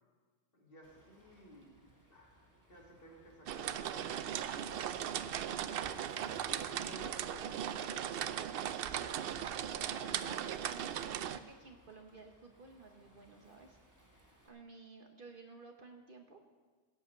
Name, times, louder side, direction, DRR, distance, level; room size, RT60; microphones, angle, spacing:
voice 1, 0.5-1.7 2.1-2.3 2.7-8.1, equal, 45° left, -2 dB, 2.6 m, -55 dB
Waves surf, 0.8-14.5, right 1 dB, 15° right, 1.9 m, -64 dB
sound 1, 3.5-11.4, right 9 dB, 60° right, 0.6 m, -38 dB
voice 2, 9.7-13.8 14.1-16.4, right 3 dB, 45° right, 4 dB, 1.0 m, -54 dB
17.0 x 5.6 x 7.9 m, 1.4 s
omnidirectional pair, 1.3 m